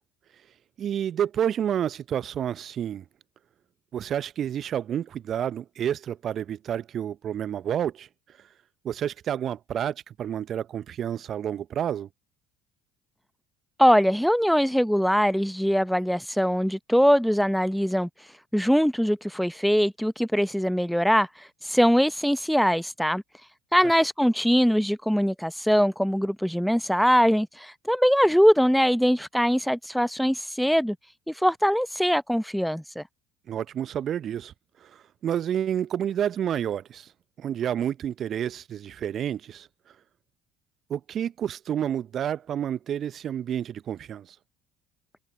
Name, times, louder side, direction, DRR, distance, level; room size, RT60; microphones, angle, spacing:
voice 1, 0.8-3.0 3.9-8.1 8.8-12.1 33.5-34.5 34.8-37.1 37.4-39.7 40.9-44.4, right 9 dB, 45° right, 0.8 m, -29 dB
voice 2, 13.8-18.1 18.5-23.2 23.7-31.0 31.3-33.0, equal, ahead, 0.8 m, -22 dB
figure-of-eight pair, 60°, 0 cm